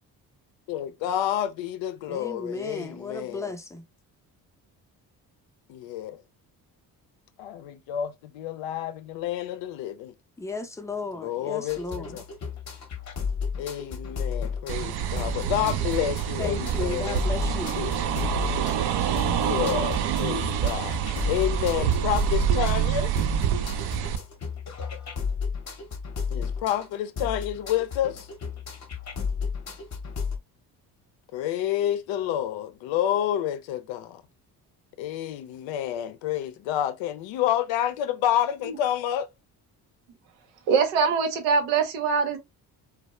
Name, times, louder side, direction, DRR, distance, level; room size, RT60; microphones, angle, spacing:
voice 1, 0.7-3.5 5.7-6.2 7.4-10.1 11.1-12.2 13.6-17.2 17.7-17.9 19.4-21.0 21.2-23.1 26.3-28.3 31.3-34.2 35.0-39.3, left 11 dB, 70° left, 0.6 m, -29 dB
voice 2, 2.1-3.8 10.4-12.2 16.4-17.8, left 3 dB, 5° left, 0.5 m, -35 dB
sound 1, 11.7-30.4, left 5 dB, 35° left, 0.8 m, -33 dB
sound 2, 14.7-24.2, right 10 dB, 60° right, 0.5 m, -27 dB
voice 3, 40.7-42.4, right 5 dB, 85° right, 0.8 m, -23 dB
2.2 x 2.0 x 2.9 m
hypercardioid pair, 50°, 47 cm